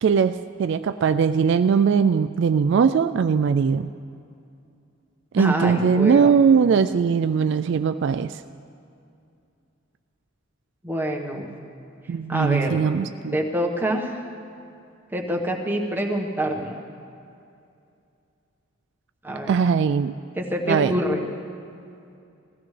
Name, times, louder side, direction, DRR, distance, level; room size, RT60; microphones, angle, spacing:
voice 1, 0.0-3.9 5.3-8.4 12.1-13.4 19.5-20.1 20.7-20.9, right 6 dB, 60° right, 11 dB, 0.3 m, -20 dB
voice 2, 5.4-6.3 10.8-11.5 12.3-12.8 13.3-14.3 15.1-16.8 19.2-19.5 20.3-21.2, equal, 10° right, 0 dB, 1.3 m, -26 dB
20.5 x 15.5 x 3.3 m, 2.5 s
head